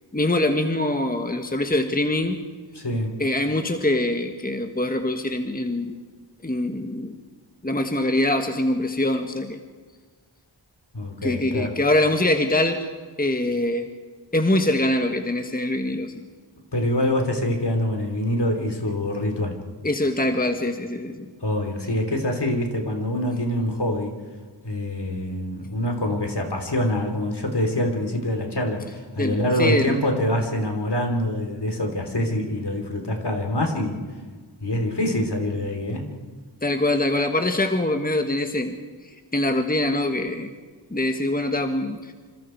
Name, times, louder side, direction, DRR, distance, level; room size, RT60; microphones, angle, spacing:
voice 1, 0.1-2.4 3.2-6.0 6.4-7.2 7.6-9.6 11.2-12.9 13.2-13.9 14.3-16.2 19.8-21.3 29.2-30.0 36.6-38.8 39.3-40.5 40.9-42.1, left 1 dB, 20° left, 5 dB, 1.5 m, -23 dB
voice 2, 2.7-3.1 10.9-11.7 16.7-19.6 21.4-24.1 24.6-34.0 34.6-36.1, left 1 dB, 60° left, 4 dB, 3.5 m, -25 dB
26.5 x 26.5 x 4.6 m, 1.5 s
wide cardioid pair, 50°, 46 cm